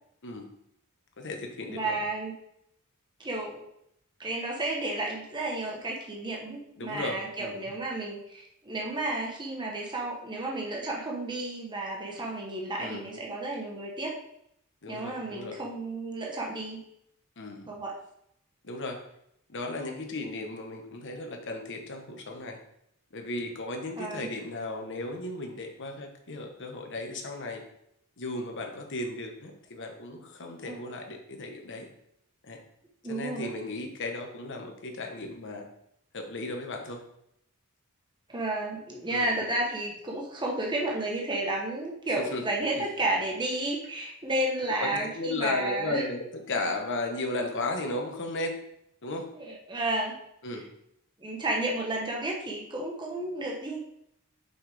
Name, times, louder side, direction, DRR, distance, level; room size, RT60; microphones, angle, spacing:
voice 1, 1.2-2.0 6.8-7.6 12.8-13.0 14.8-15.6 17.4-17.7 18.6-19.0 19.5-22.6 23.1-27.6 28.2-31.9 32.4-32.6 33.1-35.7 36.1-37.0 39.1-39.3 42.2-42.4 42.7-42.8 44.8-44.9 45.1-48.6 49.0-49.3 50.4-50.7, left 2 dB, 55° left, 3 dB, 1.2 m, -35 dB
voice 2, 1.7-2.3 3.2-3.6 4.2-14.1 14.9-16.8 17.7-17.9 24.0-24.3 30.6-30.8 33.0-33.5 38.3-46.1 49.3-50.2 50.5-50.6 51.2-53.8, right 2 dB, 20° right, -2 dB, 1.1 m, -32 dB
6.3 x 5.7 x 3.5 m, 0.75 s
head